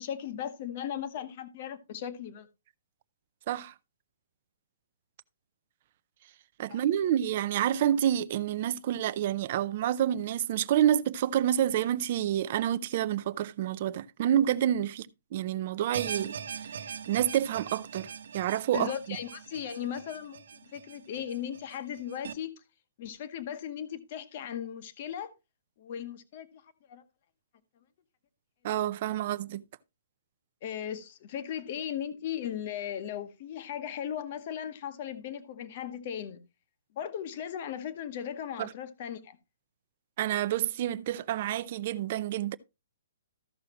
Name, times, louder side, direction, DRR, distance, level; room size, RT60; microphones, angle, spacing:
voice 1, 0.0-2.5 6.7-6.8 18.7-22.6 23.0-25.3 25.8-27.0 30.6-36.4 36.9-39.4, left 9 dB, 30° left, 0.9 m, -37 dB
voice 2, 6.6-16.4 17.1-18.1 18.3-19.2 28.6-29.6 38.6-38.7 40.2-42.6, right 11 dB, 30° right, 0.4 m, -28 dB
sound 1, 15.9-22.3, right 7 dB, 60° right, 1.1 m, -41 dB
14.0 x 6.3 x 2.9 m
hypercardioid pair, 180°, 0 cm